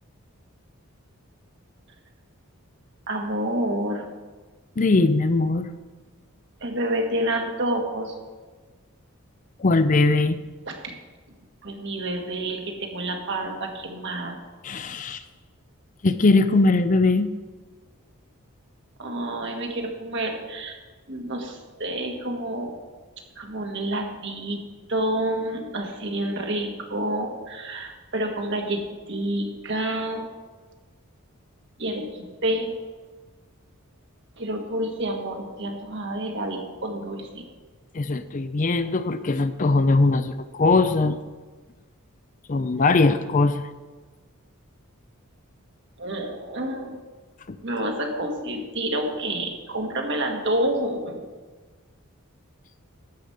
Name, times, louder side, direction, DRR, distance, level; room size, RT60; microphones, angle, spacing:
voice 1, 3.1-4.0 6.6-8.2 10.7-10.9 11.6-14.4 19.0-20.8 21.1-22.8 23.4-24.6 24.9-30.3 31.8-32.7 34.4-37.5 46.0-47.0 47.6-51.3, right 1 dB, 55° right, 2 dB, 1.7 m, -28 dB
voice 2, 4.8-5.7 9.6-10.4 14.6-15.2 16.0-17.3 37.9-41.2 42.5-43.6 47.5-47.6, left 3 dB, 35° left, 11 dB, 0.5 m, -20 dB
12.0 x 5.2 x 7.9 m, 1.3 s
head